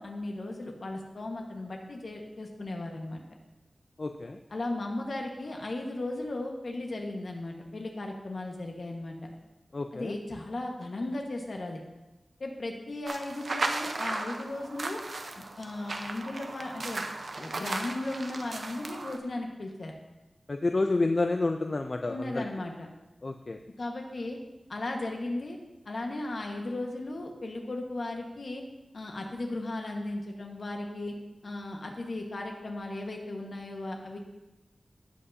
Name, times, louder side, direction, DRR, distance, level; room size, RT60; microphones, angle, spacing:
voice 1, 0.0-3.2 4.5-9.3 9.9-11.8 12.4-15.0 15.4-17.0 17.4-19.9 22.1-22.9 23.8-24.4 24.7-25.6 25.8-28.6 28.9-31.1 31.4-34.2, left 2 dB, 70° left, 1 dB, 1.4 m, -36 dB
voice 2, 4.0-4.4 9.7-10.1 20.5-22.4 23.2-23.6, left 2 dB, 50° left, 5 dB, 0.4 m, -29 dB
sound 1, 13.1-19.2, right 3 dB, 70° right, 0.7 m, -36 dB
16.0 x 5.6 x 2.7 m, 1.0 s
wide cardioid pair, 90°, 0 cm